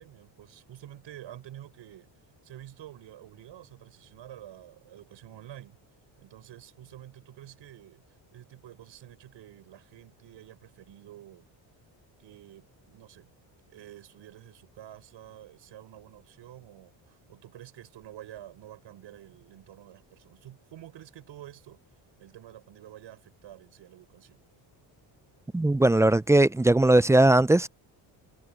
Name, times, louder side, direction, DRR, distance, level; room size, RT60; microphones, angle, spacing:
voice 1, 0.0-2.1 2.4-5.8 6.2-8.0 8.3-11.5 12.2-13.3 13.7-21.8 22.2-24.4, right 12 dB, 70° right, 5.5 m, -49 dB
voice 2, 25.5-27.7, right 1 dB, 5° right, 0.3 m, -19 dB
cardioid pair, 95°, 46 cm